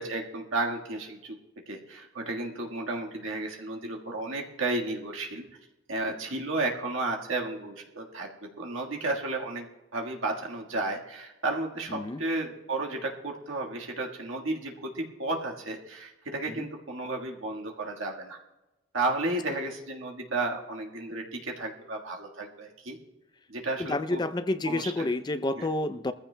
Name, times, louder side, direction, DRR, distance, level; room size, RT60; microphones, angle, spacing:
voice 1, 0.0-1.4 1.7-5.4 5.9-9.7 9.9-18.4 18.9-23.0 23.5-24.2 24.6-25.1 25.6-25.7, right 2 dB, 75° right, 1 dB, 1.6 m, -33 dB
voice 2, 11.9-12.2 16.5-16.7 23.8-26.1, left 2 dB, 20° left, 11 dB, 0.4 m, -29 dB
21.5 x 14.5 x 2.2 m, 1.0 s
head